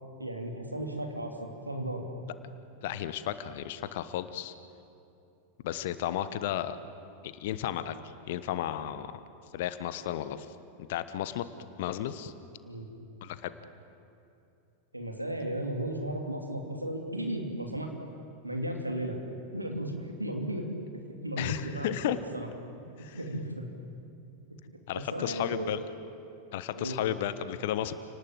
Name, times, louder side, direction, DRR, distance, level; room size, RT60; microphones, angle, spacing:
voice 1, 0.2-2.0 12.6-12.9 14.9-17.9 18.4-19.2 19.5-20.6 21.2-22.5 23.1-23.7 24.9-25.8 26.7-27.0, right 1 dB, 85° right, 2 dB, 2.8 m, -35 dB
voice 2, 2.8-4.5 5.6-6.8 7.4-7.9 8.3-9.1 9.5-10.5 10.9-11.4 11.8-12.3 13.2-13.5 21.4-22.2 23.0-23.2 24.9-25.8 26.5-27.9, left 12 dB, 50° left, 12 dB, 1.2 m, -33 dB
29.0 x 19.0 x 7.8 m, 2.7 s
figure-of-eight pair, 90°, 0 cm